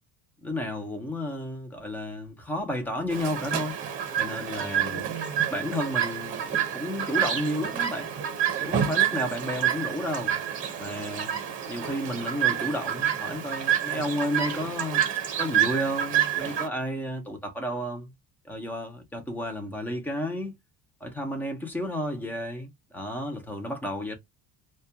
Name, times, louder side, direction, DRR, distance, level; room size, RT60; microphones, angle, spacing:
voice 1, 0.4-3.8 4.2-5.1 5.5-8.1 8.6-10.4 10.8-11.3 11.7-15.0 15.4-18.1 18.4-20.6 21.0-24.1, equal, 5° left, 0.4 m, -32 dB
Chirp tweet, 3.1-16.7, right 9 dB, 35° right, 0.8 m, -28 dB
2.2 x 2.2 x 2.6 m
cardioid pair, 175°, 36 cm